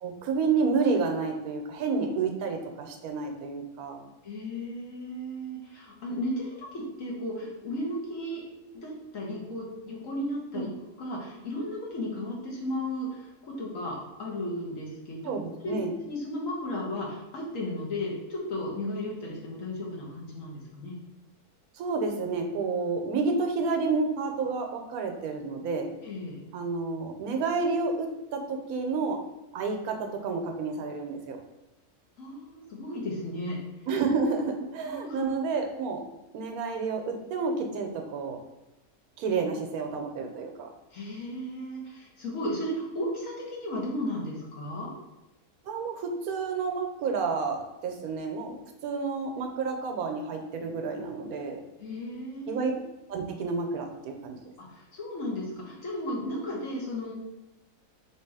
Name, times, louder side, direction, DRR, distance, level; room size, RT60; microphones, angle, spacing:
voice 1, 0.0-4.1 10.5-10.7 15.2-15.9 21.7-25.9 26.5-29.2 29.5-31.4 33.9-36.0 36.3-38.4 39.2-40.7 45.6-51.6 52.5-52.7 53.1-54.4, right 4 dB, 75° right, 4 dB, 1.1 m, -30 dB
voice 2, 4.2-8.4 8.7-10.7 11.0-15.8 16.0-20.9 26.0-26.4 32.2-33.6 34.8-35.3 40.9-44.9 51.8-52.8 54.6-57.1, left 1 dB, 60° left, -3 dB, 1.4 m, -35 dB
3.3 x 2.9 x 4.7 m, 1.0 s
omnidirectional pair, 1.6 m